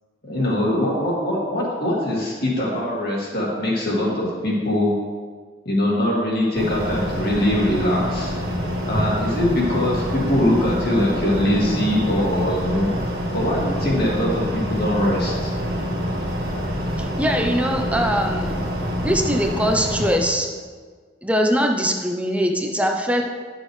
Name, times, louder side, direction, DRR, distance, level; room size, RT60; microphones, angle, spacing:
voice 1, 0.2-4.9 5.6-8.3 8.9-12.9 13.3-15.5, left 1 dB, 50° left, -4 dB, 2.3 m, -22 dB
sound 1, 6.5-20.2, equal, 60° right, 1.7 m, -26 dB
voice 2, 17.0-18.6 19.0-20.5 21.2-23.2, equal, 5° right, 2 dB, 0.6 m, -22 dB
11.0 x 6.3 x 3.2 m, 1.5 s
head